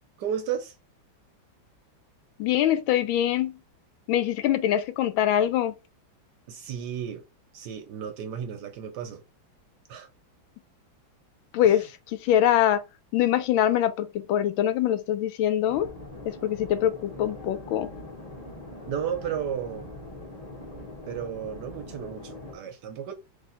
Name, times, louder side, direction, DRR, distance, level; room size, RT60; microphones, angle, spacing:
voice 1, 0.2-0.7 6.5-7.2 7.5-9.2 9.9-10.1 11.6-11.9 18.9-19.9 21.1-23.1, right 8 dB, 70° right, 1.1 m, -33 dB
voice 2, 2.4-3.5 4.1-5.7 11.5-11.9 12.2-12.8 13.1-15.9 16.4-17.9, left 11 dB, 85° left, 1.4 m, -23 dB
sound 1, 15.7-22.6, left 2 dB, 30° left, 0.7 m, -42 dB
3.4 x 2.8 x 3.9 m
omnidirectional pair, 2.2 m